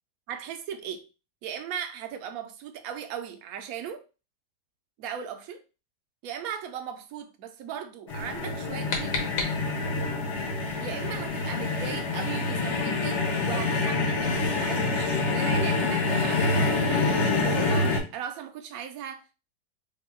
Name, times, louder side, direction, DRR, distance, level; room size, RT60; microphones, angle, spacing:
voice 1, 0.3-1.1 1.4-4.0 5.0-5.6 6.2-9.1 10.8-19.4, right 8 dB, 70° right, 0.8 m, -38 dB
sound 1, 8.1-18.0, left 3 dB, 55° left, 0.8 m, -26 dB
sound 2, 8.4-10.1, left 4 dB, 75° left, 1.6 m, -34 dB
3.5 x 2.2 x 4.2 m
omnidirectional pair, 2.0 m